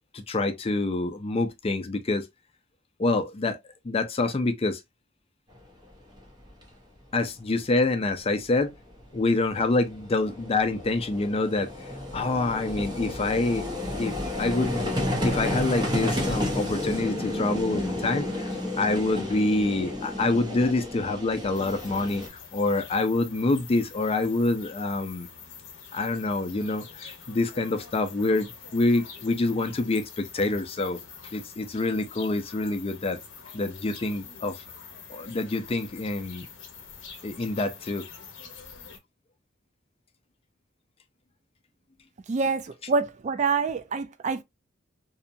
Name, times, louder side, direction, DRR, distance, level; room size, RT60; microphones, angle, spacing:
voice 1, 0.1-2.3 3.0-3.6 3.8-4.8 7.1-8.7 9.1-14.9 15.2-25.3 25.9-31.0 31.3-33.2 33.5-34.6 35.1-36.5 37.2-38.1, left 2 dB, 30° left, 0.4 m, -26 dB
Vehicle, 6.2-6.3 6.5-6.6 8.6-8.7 8.9-22.3, left 1 dB, 20° right, 0.8 m, -31 dB
sound 1, 21.5-39.0, left 6 dB, 80° left, 0.8 m, -46 dB
voice 2, 42.3-44.4, right 4 dB, 40° right, 0.3 m, -26 dB
2.7 x 2.2 x 2.5 m
head